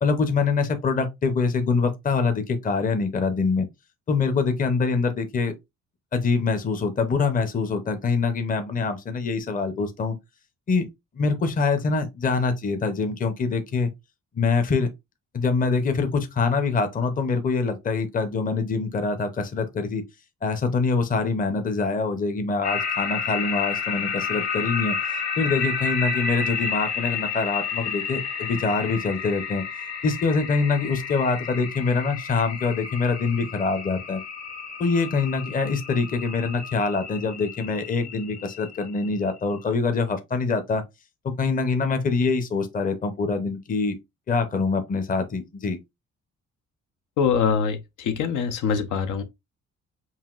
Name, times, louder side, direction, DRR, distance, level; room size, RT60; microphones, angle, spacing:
voice 1, 0.0-3.7 4.1-5.5 6.1-10.2 10.7-10.9 11.1-13.9 14.3-14.9 15.3-20.0 20.4-25.0 25.4-29.6 30.0-34.2 34.8-40.8 41.2-44.0 44.3-45.8, left 4 dB, 25° left, 0.7 m, -24 dB
sound 1, 22.6-39.4, left 6 dB, 60° left, 1.8 m, -31 dB
voice 2, 47.2-49.2, left 6 dB, 80° left, 0.8 m, -24 dB
5.6 x 2.6 x 2.4 m
cardioid pair, 140°, 30 cm